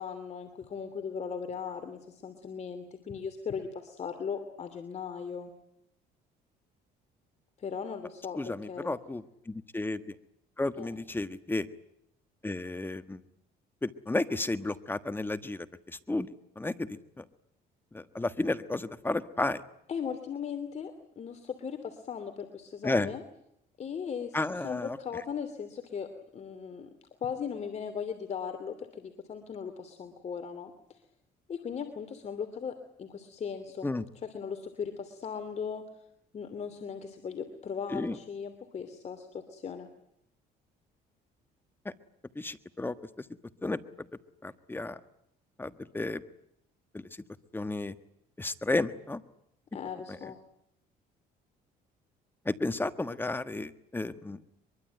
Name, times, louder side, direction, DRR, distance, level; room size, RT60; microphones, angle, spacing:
voice 1, 0.0-5.5 7.6-8.9 10.8-11.0 19.9-23.2 23.8-26.9 27.2-31.0 31.5-33.9 34.2-35.8 36.3-39.9 49.7-50.4, left 6 dB, 40° left, 7 dB, 2.9 m, -38 dB
voice 2, 8.4-10.0 10.6-11.7 12.4-13.2 13.8-16.3 16.6-17.2 17.9-19.6 22.8-23.1 24.3-25.0 33.8-34.0 37.9-38.2 42.3-42.9 43.6-43.8 44.4-45.0 45.6-46.2 46.9-47.0 47.5-47.9 48.4-49.2 52.4-54.4, left 2 dB, 10° left, 11 dB, 1.5 m, -32 dB
23.5 x 23.5 x 9.1 m, 0.76 s
cardioid pair, 110°, 17 cm